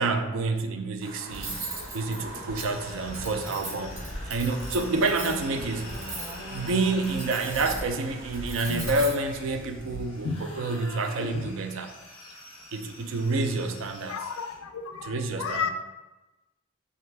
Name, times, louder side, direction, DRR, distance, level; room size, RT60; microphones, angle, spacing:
voice 1, 0.0-1.6 1.9-4.0 4.3-5.9 6.5-11.9 12.7-14.2 15.0-15.7, right 3 dB, 60° right, 7 dB, 0.4 m, -28 dB
sound 1, 1.0-9.0, right 1 dB, 45° right, 0.8 m, -41 dB
Cutlery silverware, 1.3-10.0, right 2 dB, 90° right, 1.3 m, -39 dB
sound 2, 2.6-14.6, left 2 dB, 25° left, 0.6 m, -47 dB
voice 2, 11.2-11.5 14.1-15.7, left 5 dB, 75° left, 8 dB, 0.4 m, -33 dB
3.7 x 3.2 x 3.3 m, 1.1 s
head